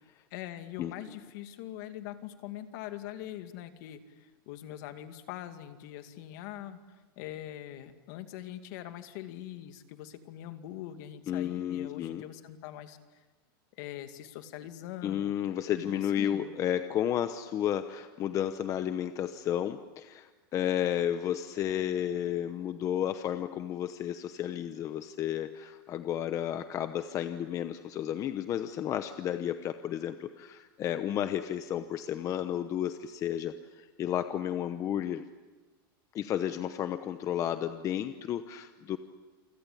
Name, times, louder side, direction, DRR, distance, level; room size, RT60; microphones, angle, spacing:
voice 1, 0.3-6.8 7.2-13.0 13.8-15.3 15.8-16.5, left 12 dB, 55° left, 8 dB, 2.4 m, -42 dB
voice 2, 11.3-12.2 15.0-35.2 36.1-39.0, left 10 dB, 25° left, 10 dB, 0.9 m, -32 dB
28.5 x 24.5 x 8.5 m, 1.3 s
supercardioid pair, 155°, 12 cm